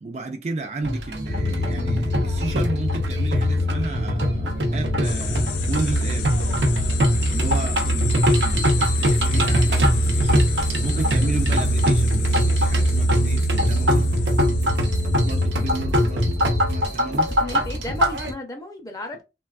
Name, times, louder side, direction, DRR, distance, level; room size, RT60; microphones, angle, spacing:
voice 1, 0.0-6.3 7.3-14.1 15.2-16.4 16.7-17.3, right 3 dB, 40° right, 0.4 m, -32 dB
sound 1, 0.8-18.3, equal, 75° right, 0.6 m, -24 dB
sound 2, 1.3-16.9, right 1 dB, 55° left, 0.7 m, -24 dB
sound 3, 5.0-15.5, left 9 dB, 85° left, 0.4 m, -34 dB
voice 2, 7.9-8.3 17.4-19.2, left 2 dB, 20° left, 0.6 m, -34 dB
3.3 x 2.2 x 2.3 m
head